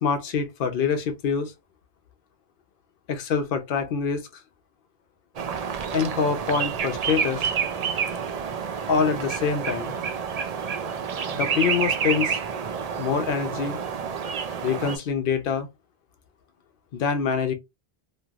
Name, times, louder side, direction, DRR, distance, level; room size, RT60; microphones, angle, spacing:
voice 1, 0.0-1.5 3.1-4.3 5.9-7.5 8.9-9.9 11.3-12.4 13.0-13.8 14.6-15.7 16.9-17.5, left 6 dB, 60° left, 0.8 m, -25 dB
sound 1, 5.4-15.0, right 6 dB, 50° right, 0.5 m, -29 dB
3.1 x 2.6 x 2.3 m
omnidirectional pair, 1.0 m